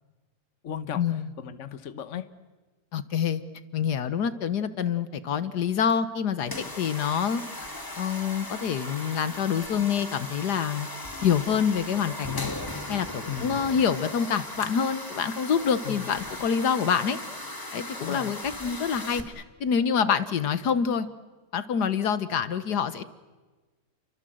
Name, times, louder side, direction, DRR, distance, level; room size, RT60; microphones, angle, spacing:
voice 1, 0.6-2.3 13.3-13.7 15.8-16.1 18.0-18.4, left 9 dB, 50° left, 12 dB, 1.3 m, -36 dB
voice 2, 2.9-3.4 3.7-7.4 8.0-10.9 11.2-12.5 12.9-17.2 17.7-21.1 21.5-23.0, left 7 dB, 80° left, 13 dB, 1.7 m, -26 dB
sound 1, 6.4-19.2, left 1 dB, 15° left, 1.8 m, -38 dB
30.0 x 24.0 x 7.8 m, 1.2 s
omnidirectional pair, 1.7 m